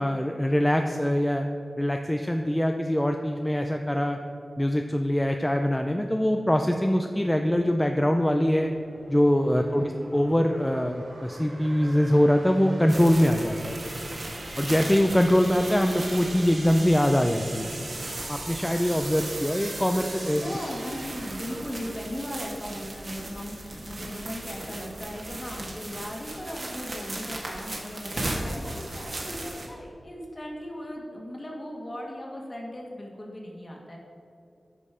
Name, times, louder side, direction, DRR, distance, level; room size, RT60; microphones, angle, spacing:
voice 1, 0.0-1.5 1.8-4.2 4.6-8.7 9.1-13.8 14.6-17.7 18.3-20.4, equal, 10° left, 4 dB, 0.5 m, -23 dB
sound 1, 7.2-22.6, right 2 dB, 70° right, 1.5 m, -41 dB
voice 2, 9.6-10.0 20.3-34.0, equal, 35° left, -1 dB, 1.9 m, -37 dB
sound 2, 12.9-29.7, right 1 dB, 50° right, 1.6 m, -38 dB
9.4 x 5.4 x 5.0 m, 2.6 s
wide cardioid pair, 65°, 0 cm